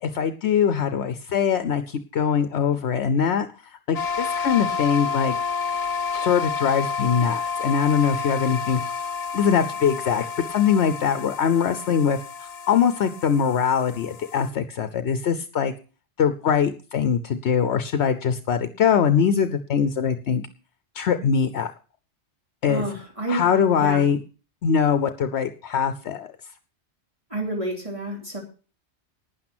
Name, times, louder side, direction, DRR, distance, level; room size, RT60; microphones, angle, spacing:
voice 1, 0.0-5.3 6.1-8.8 9.3-15.7 16.2-20.4 20.9-21.7 22.6-22.8 23.3-24.2 24.6-26.3, left 7 dB, 75° left, 11 dB, 1.0 m, -22 dB
sound 1, 3.9-14.5, left 5 dB, 45° left, 0.7 m, -30 dB
voice 2, 22.7-23.4 23.8-24.0 27.3-28.4, right 2 dB, 30° right, -1 dB, 3.4 m, -29 dB
12.0 x 9.6 x 6.0 m, 0.37 s
omnidirectional pair, 1.1 m